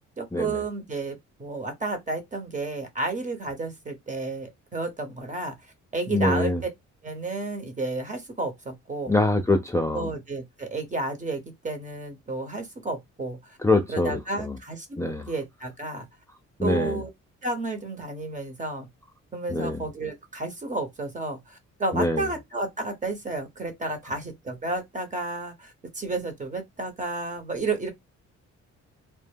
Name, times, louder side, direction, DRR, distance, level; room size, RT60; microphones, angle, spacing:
voice 1, 0.2-5.5 5.9-6.5 7.0-9.1 9.9-13.6 13.9-16.0 16.6-17.1 17.4-18.9 19.3-27.9, right 3 dB, 25° right, 1.0 m, -32 dB
voice 2, 6.1-6.6 9.1-10.1 13.6-14.5 15.0-15.2 16.6-17.0 19.5-19.8 21.9-22.2, left 2 dB, 10° left, 0.4 m, -24 dB
2.1 x 2.0 x 3.4 m
cardioid pair, 90°, 30 cm